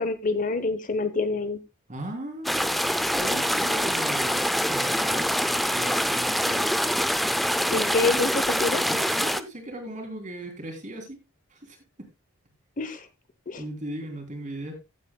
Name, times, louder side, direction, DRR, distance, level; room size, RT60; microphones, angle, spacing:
voice 1, 0.0-1.6 7.7-8.8 12.8-13.1 13.5-13.6, left 3 dB, 40° left, 1.0 m, -26 dB
voice 2, 1.9-5.3 5.7-6.6 8.9-11.2 11.6-11.8 13.6-14.8, right 1 dB, 35° right, 3.3 m, -37 dB
sound 1, 2.4-9.4, equal, ahead, 0.5 m, -25 dB
15.5 x 8.5 x 2.3 m
head